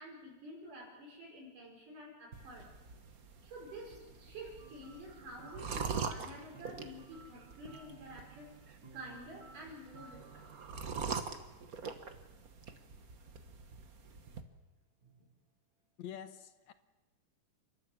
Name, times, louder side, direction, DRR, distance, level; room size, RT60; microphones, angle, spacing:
voice 1, 0.0-2.7 3.4-8.5 8.9-10.8 15.0-15.3, right 1 dB, 80° right, -1 dB, 6.7 m, -50 dB
sound 1, 2.3-14.4, right 5 dB, 60° right, 0.9 m, -44 dB
sound 2, 4.6-11.0, right 5 dB, 40° right, 2.0 m, -57 dB
voice 2, 16.0-16.7, left 9 dB, 70° left, 10 dB, 2.1 m, -46 dB
29.5 x 13.0 x 7.7 m, 1.1 s
omnidirectional pair, 3.6 m